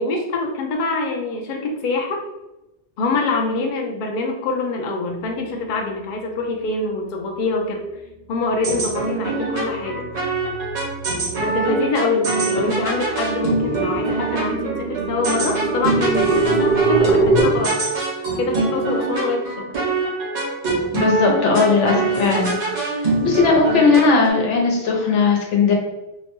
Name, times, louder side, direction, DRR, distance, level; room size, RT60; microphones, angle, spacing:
voice 1, 0.0-2.2 3.0-7.8 8.3-10.1 11.4-17.8 18.4-19.8, left 3 dB, 55° left, 1 dB, 0.6 m, -24 dB
sound 1, 7.7-8.1 8.5-17.4, right 3 dB, 55° right, 0.6 m, -24 dB
sound 2, 8.6-24.3, right 3 dB, 80° right, 1.3 m, -24 dB
voice 2, 20.9-22.5 23.0-25.7, left 4 dB, 85° left, 0 dB, 1.0 m, -17 dB
2.9 x 2.1 x 2.9 m, 0.97 s
omnidirectional pair, 1.2 m